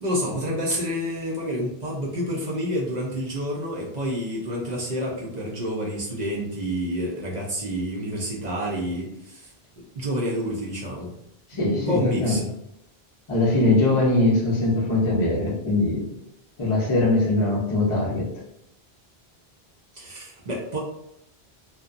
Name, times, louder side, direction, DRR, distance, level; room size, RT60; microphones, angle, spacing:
voice 1, 0.0-9.5 10.0-11.1 11.5-12.5 19.9-20.8, equal, 50° right, -4 dB, 0.6 m, -29 dB
voice 2, 11.5-12.4 13.3-16.1 16.6-18.3, left 2 dB, 35° left, -4 dB, 0.6 m, -21 dB
2.7 x 2.2 x 2.4 m, 0.80 s
omnidirectional pair, 1.1 m